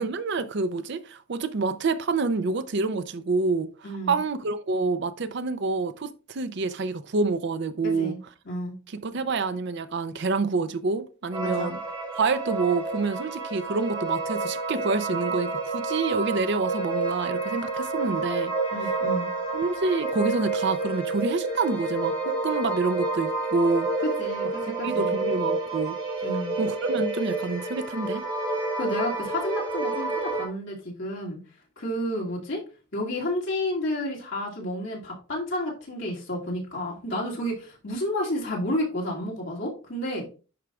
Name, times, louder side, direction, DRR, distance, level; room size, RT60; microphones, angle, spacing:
voice 1, 0.0-3.7 4.1-8.1 8.9-11.8 12.2-18.5 19.5-23.9 24.7-26.0 26.6-28.2, right 4 dB, 55° right, 0.5 m, -27 dB
voice 2, 3.8-4.2 7.8-8.2 8.5-8.7 11.4-11.7 18.7-19.3 24.0-25.2 26.2-26.5 28.8-31.4 31.8-32.6 32.9-40.3, left 1 dB, 60° left, 2.3 m, -31 dB
sound 1, 11.3-30.5, right 3 dB, 20° right, 2.4 m, -29 dB
11.0 x 4.5 x 2.4 m
head